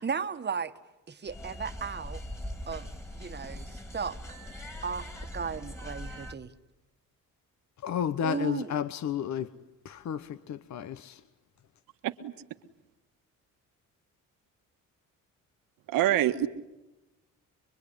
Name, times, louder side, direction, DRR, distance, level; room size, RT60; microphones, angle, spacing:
voice 1, 0.0-0.7 1.1-2.2 2.7-2.9 3.1-4.2 4.8-5.1 5.3-6.5 8.2-8.7, right 6 dB, 30° right, 1.5 m, -35 dB
sound 1, 1.3-6.3, left 1 dB, 10° left, 2.8 m, -41 dB
voice 2, 7.8-9.5 9.8-11.2, left 8 dB, 55° left, 1.0 m, -32 dB
voice 3, 15.9-16.5, right 13 dB, 85° right, 1.8 m, -25 dB
24.5 x 23.5 x 10.0 m
cardioid pair, 95°, 33 cm